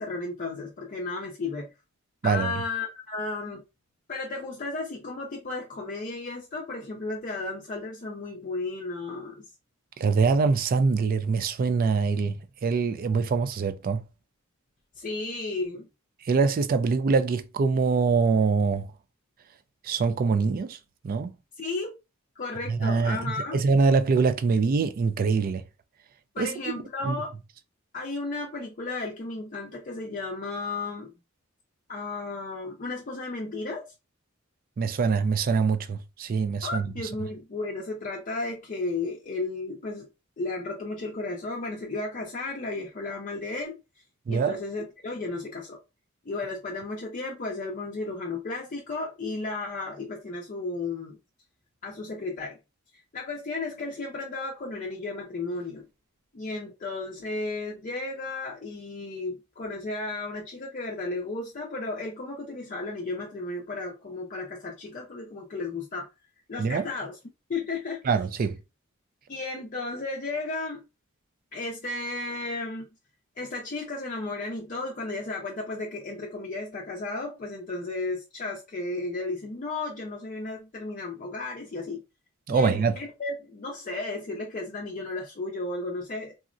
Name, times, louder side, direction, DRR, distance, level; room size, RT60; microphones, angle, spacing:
voice 1, 0.0-1.7 2.2-3.6 4.1-9.4 15.0-15.9 21.6-22.0 22.4-23.6 26.3-27.3 27.9-31.1 31.9-33.8 36.6-40.1 40.4-43.8 44.3-45.8 46.3-51.2 51.8-52.6 53.1-55.8 56.3-66.1 66.5-67.2 67.5-68.0 69.3-70.8 71.5-72.9 73.4-82.0 82.5-86.3, left 3 dB, 40° left, 0.5 m, -34 dB
voice 2, 10.0-14.0 16.3-18.9 19.8-20.8 21.0-21.3 22.7-25.6 26.4-26.5 27.0-27.2 34.8-36.9 44.3-44.6 66.6-66.9 68.1-68.6 82.5-82.9, right 4 dB, 45° right, 0.3 m, -24 dB
3.6 x 2.1 x 2.5 m
head